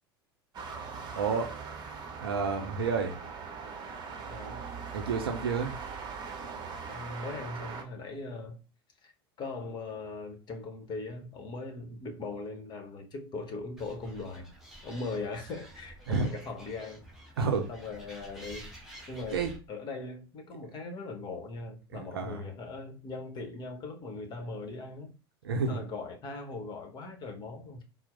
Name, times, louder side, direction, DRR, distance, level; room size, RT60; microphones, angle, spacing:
sound 1, 0.5-7.8, right 5 dB, 35° right, 0.8 m, -41 dB
voice 1, 1.1-3.2 4.9-5.8 16.1-16.3 17.4-17.7 19.3-19.5 21.9-22.4 25.4-25.8, right 5 dB, 70° right, 0.5 m, -31 dB
voice 2, 4.3-4.7 6.9-8.6 9.0-9.1 9.4-14.5 14.8-17.0 17.7-18.7 19.1-19.4 19.7-25.2 25.7-27.8, left 3 dB, 35° left, 1.0 m, -40 dB
Animal, 13.8-19.6, right 1 dB, 5° right, 1.5 m, -50 dB
4.4 x 2.0 x 3.8 m
figure-of-eight pair, 75°, 13 cm